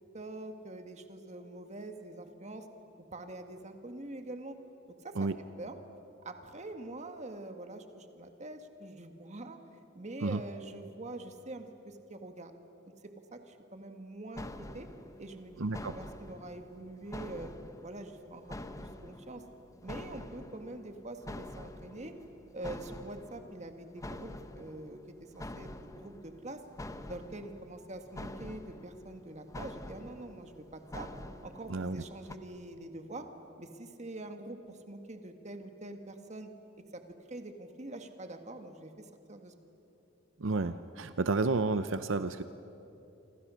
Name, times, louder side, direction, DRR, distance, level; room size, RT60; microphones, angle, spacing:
voice 1, 0.1-2.7 3.1-4.6 4.9-5.3 5.6-5.8 6.2-9.6 9.9-12.5 13.0-14.9 15.2-17.5 17.8-19.4 19.8-22.1 22.5-26.6 27.1-31.1 31.4-33.3 33.6-36.5 36.9-37.0 37.3-39.6, right 2 dB, 35° right, 6 dB, 1.8 m, -45 dB
sound 1, 14.4-32.4, left 1 dB, 15° left, 0.9 m, -47 dB
voice 2, 15.6-16.0 31.7-32.0 40.4-42.4, right 3 dB, 80° right, 11 dB, 0.7 m, -31 dB
28.0 x 26.5 x 6.4 m, 2.9 s
head